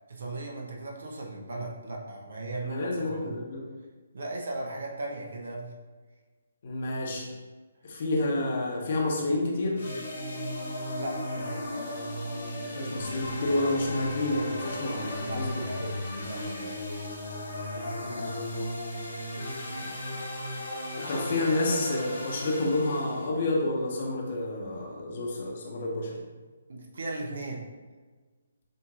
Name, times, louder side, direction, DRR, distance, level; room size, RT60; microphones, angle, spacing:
voice 1, 0.1-3.3 4.1-5.7 7.9-8.0 10.6-11.7 15.2-17.1 26.7-27.7, right 2 dB, 60° right, 0 dB, 0.9 m, -38 dB
voice 2, 2.6-3.6 6.6-7.3 7.8-9.8 12.6-15.9 18.0-18.4 21.1-26.2, left 2 dB, 45° left, -1 dB, 1.0 m, -29 dB
sound 1, 9.8-23.3, left 1 dB, 60° left, 1.3 m, -35 dB
7.5 x 2.8 x 2.5 m, 1.4 s
figure-of-eight pair, 135°, 0 cm